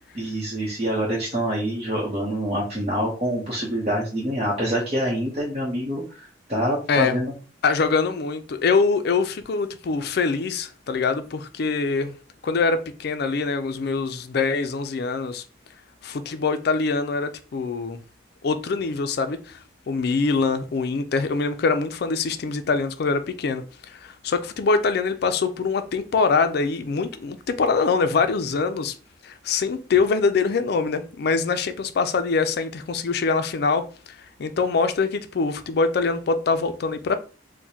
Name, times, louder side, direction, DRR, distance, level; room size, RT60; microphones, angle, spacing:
voice 1, 0.1-7.2, equal, 35° right, 0.8 m, -26 dB
voice 2, 7.6-12.1 12.4-15.4 16.0-18.0 18.4-19.6 19.9-28.9 29.2-33.8 34.4-37.2, left 4 dB, 60° left, 0.4 m, -24 dB
4.5 x 2.1 x 2.7 m
head